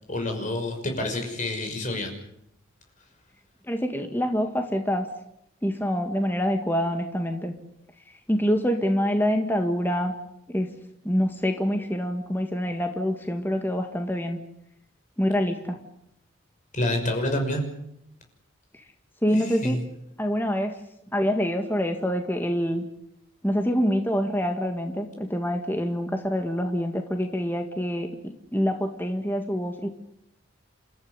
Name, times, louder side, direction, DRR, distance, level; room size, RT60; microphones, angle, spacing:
voice 1, 0.1-2.1 16.7-17.7 19.3-19.8, left 1 dB, 35° left, 3 dB, 5.9 m, -28 dB
voice 2, 3.7-5.1 5.6-7.5 8.3-10.1 10.5-10.7 11.0-14.4 15.2-15.8 18.7-18.8 19.2-19.8 20.2-20.8 21.1-22.8 23.4-29.9, equal, 10° left, 4 dB, 1.8 m, -26 dB
29.5 x 14.0 x 9.8 m, 0.79 s
head